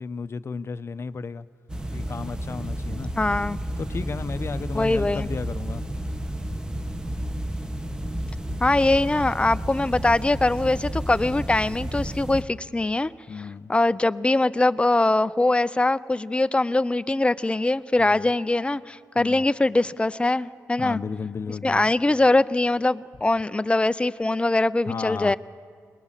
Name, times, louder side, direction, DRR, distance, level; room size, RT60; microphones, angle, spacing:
voice 1, 0.0-1.5 1.9-3.1 3.8-5.8 13.3-13.7 18.0-18.3 19.2-19.4 20.8-22.0 24.9-25.4, left 5 dB, 45° left, 14 dB, 0.7 m, -33 dB
sound 1, 1.7-12.4, right 1 dB, 15° right, 1.4 m, -31 dB
voice 2, 3.2-3.6 4.7-5.3 8.6-13.1 13.7-21.0 21.6-25.4, left 2 dB, 20° left, 16 dB, 0.6 m, -22 dB
21.0 x 20.0 x 7.4 m, 2.1 s
cardioid pair, 65°, 6 cm